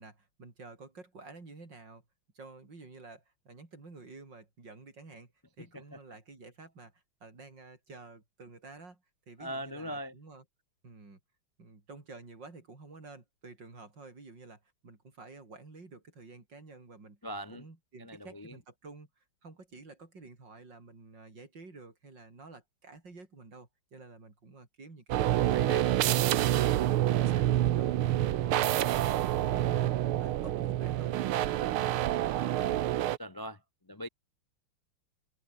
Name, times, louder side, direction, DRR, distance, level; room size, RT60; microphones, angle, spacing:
voice 1, 0.0-2.0 2.3-5.3 5.6-10.4 10.8-11.2 11.6-17.2 17.5-26.0 26.4-32.8, right 3 dB, 55° right, 5.3 m, -51 dB
voice 2, 5.6-6.0 9.4-10.1 17.2-17.7 18.0-18.6 25.5-25.8 33.2-33.6 33.9-34.1, equal, 30° left, 0.3 m, -40 dB
sound 1, 25.1-33.2, right 13 dB, 85° right, 1.8 m, -27 dB
open air
omnidirectional pair, 2.3 m